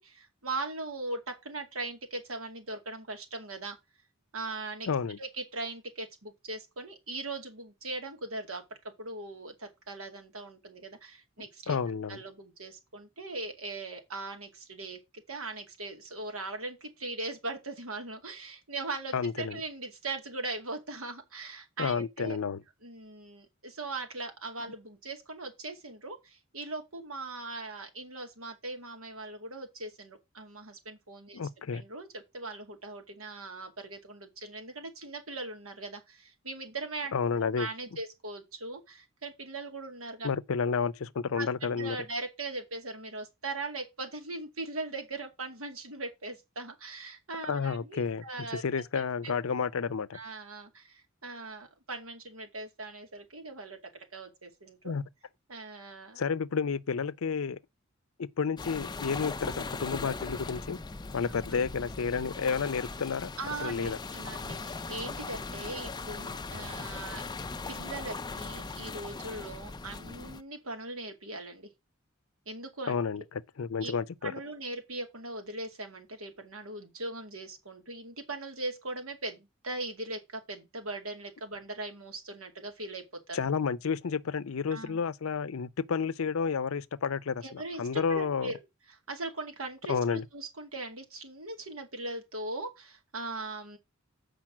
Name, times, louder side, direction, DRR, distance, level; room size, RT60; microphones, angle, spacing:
voice 1, 0.0-3.8 4.3-4.9 5.2-8.6 9.0-11.8 12.1-15.0 15.3-22.4 22.8-31.4 31.7-40.3 41.4-49.4 50.1-53.8 54.1-54.9 55.5-56.2 63.4-67.2 67.7-71.7 72.5-73.0 73.8-73.9 74.2-83.4 84.7-85.0 87.4-88.6 88.9-93.8, right 2 dB, 85° right, 2.2 m, -40 dB
voice 2, 4.9-5.2 11.7-12.2 19.1-19.6 21.8-22.6 31.3-31.8 37.1-37.7 40.2-42.0 47.5-48.2 48.5-50.2 54.8-55.0 56.2-57.6 58.2-60.8 61.1-63.3 63.6-64.0 72.9-73.2 73.6-74.3 83.3-88.5 89.9-90.2, left 5 dB, 75° left, 0.5 m, -31 dB
sound 1, 58.6-70.4, left 3 dB, 20° left, 0.5 m, -39 dB
7.4 x 5.2 x 5.9 m
head